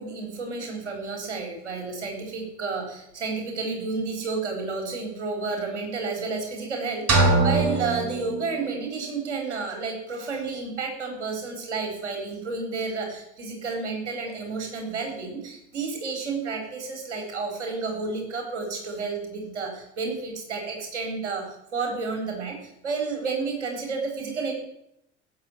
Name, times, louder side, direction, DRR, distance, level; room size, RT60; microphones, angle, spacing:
voice 1, 0.0-21.5 21.7-24.5, right 4 dB, 75° right, 3 dB, 4.5 m, -31 dB
sound 1, 7.1-9.0, right 3 dB, 45° right, 4.4 m, -23 dB
16.0 x 7.2 x 9.4 m, 0.79 s
figure-of-eight pair, 65°, 35 cm